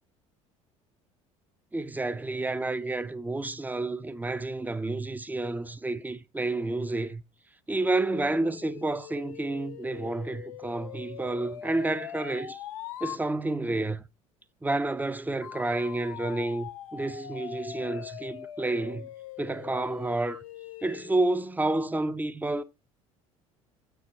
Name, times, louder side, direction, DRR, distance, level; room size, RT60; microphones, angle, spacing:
voice 1, 1.7-7.2 7.7-12.6 13.0-14.0 14.6-19.1 19.4-20.4 20.8-22.6, right 2 dB, 10° right, 0.6 m, -30 dB
sound 1, 8.0-13.2 15.4-21.3, left 12 dB, 80° left, 0.5 m, -42 dB
8.6 x 4.8 x 4.0 m
hypercardioid pair, 65°, 17 cm